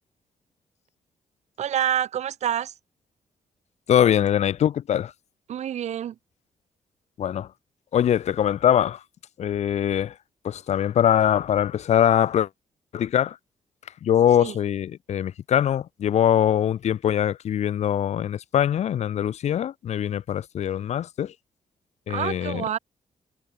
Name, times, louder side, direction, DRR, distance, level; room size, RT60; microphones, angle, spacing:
voice 1, 1.6-2.7 5.5-6.1 14.4-14.6 22.1-22.8, right 10 dB, 75° right, 5.7 m, -27 dB
voice 2, 3.9-5.1 7.2-7.5 7.9-9.0 9.4-10.1 10.4-12.5 12.9-13.4 14.0-21.3 22.1-22.6, left 10 dB, 75° left, 4.2 m, -22 dB
cardioid pair, 110°, 12 cm